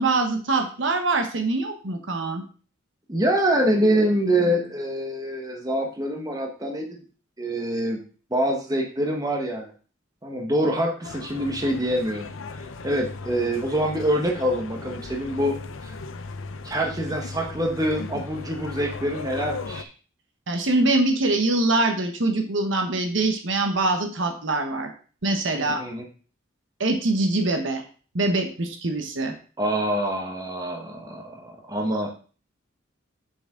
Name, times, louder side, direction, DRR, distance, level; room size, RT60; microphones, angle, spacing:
voice 1, 0.0-2.4 20.5-24.9 25.2-25.8 26.8-27.8 28.1-29.3, right 2 dB, 70° right, 5 dB, 1.1 m, -23 dB
voice 2, 3.1-7.0 7.4-8.0 8.3-9.7 10.2-12.3 12.8-15.6 15.8-15.9 16.6-19.9 25.5-26.0 29.6-32.1, right 1 dB, 20° right, 1 dB, 1.3 m, -25 dB
sound 1, 11.0-19.8, left 3 dB, 80° left, 0.7 m, -37 dB
7.0 x 6.8 x 3.8 m, 0.39 s
head